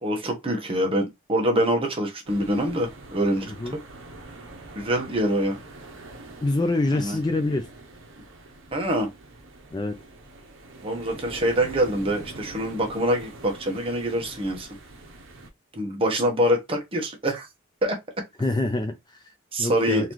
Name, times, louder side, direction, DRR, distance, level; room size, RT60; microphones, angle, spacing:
voice 1, 0.0-3.8 4.7-5.6 6.9-7.2 8.7-9.1 10.8-14.7 15.7-17.5 17.8-18.0 19.5-20.1, equal, 25° right, 1.0 m, -25 dB
sound 1, 2.3-15.5, right 2 dB, 70° right, 0.8 m, -44 dB
voice 2, 6.4-7.7 9.7-10.0 18.4-19.3 19.6-20.1, left 2 dB, 20° left, 0.4 m, -26 dB
3.9 x 2.7 x 3.1 m
head